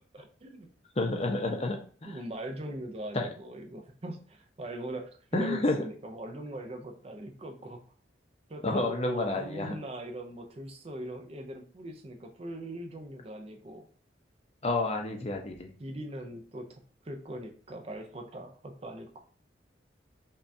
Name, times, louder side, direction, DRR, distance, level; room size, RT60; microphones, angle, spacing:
voice 1, 0.2-0.7 2.0-7.8 8.5-13.8 15.8-19.2, right 1 dB, 30° right, 4 dB, 0.5 m, -41 dB
voice 2, 1.0-2.2 3.1-3.3 5.3-5.8 8.6-9.8 14.6-15.7, left 2 dB, 35° left, 3 dB, 0.6 m, -30 dB
5.3 x 2.4 x 2.6 m, 0.43 s
head